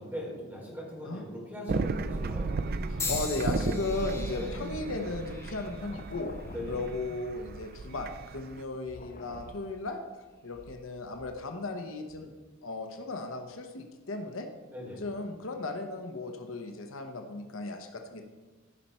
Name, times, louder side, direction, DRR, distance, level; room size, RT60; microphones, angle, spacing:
voice 1, 0.0-2.5 4.3-4.5 6.5-6.8 14.7-15.0, equal, 10° right, -4 dB, 3.7 m, -40 dB
sound 1, 1.7-8.6, right 3 dB, 45° right, 0.4 m, -35 dB
voice 2, 2.9-6.3 6.7-12.3 12.6-14.5 15.0-18.2, left 2 dB, 70° left, 5 dB, 0.9 m, -36 dB
sound 2, 3.0-7.1 7.8-8.3 9.2-9.4, left 4 dB, 15° left, 1.2 m, -41 dB
sound 3, 4.2-11.7 12.1-12.3, left 3 dB, 35° left, 0.4 m, -51 dB
15.0 x 5.5 x 4.4 m, 1.3 s
head